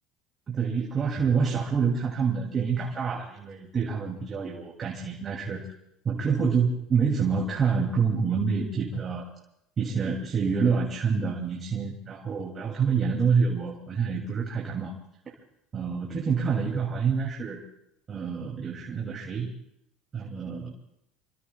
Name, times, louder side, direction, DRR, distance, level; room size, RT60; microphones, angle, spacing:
voice 1, 0.5-5.6 6.0-9.3 9.8-14.9 15.3-15.4 15.7-17.6 18.1-19.5 20.1-20.7, right 5 dB, 30° right, -1 dB, 2.6 m, -27 dB
27.5 x 22.5 x 2.3 m, 0.77 s
supercardioid pair, 110°, 0 cm